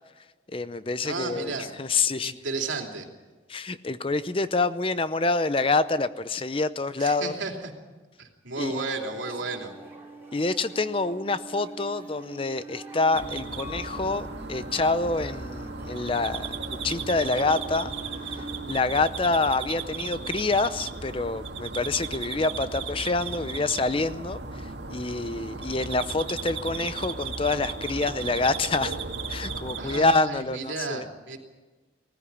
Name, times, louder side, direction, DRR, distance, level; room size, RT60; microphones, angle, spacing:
voice 1, 0.5-2.3 3.5-7.3 8.6-8.8 10.3-16.5 16.8-17.9 18.7-29.0 29.3-31.1, left 3 dB, 30° left, 13 dB, 0.6 m, -27 dB
voice 2, 1.0-1.7 2.2-3.0 7.0-7.5 8.2-9.7 29.8-31.4, right 3 dB, 90° right, 2 dB, 3.0 m, -33 dB
sound 1, 8.6-18.6, right 2 dB, 10° right, 3.0 m, -43 dB
sound 2, 13.1-30.2, right 4 dB, 70° right, 2.0 m, -36 dB
19.5 x 14.5 x 10.0 m, 1.3 s
head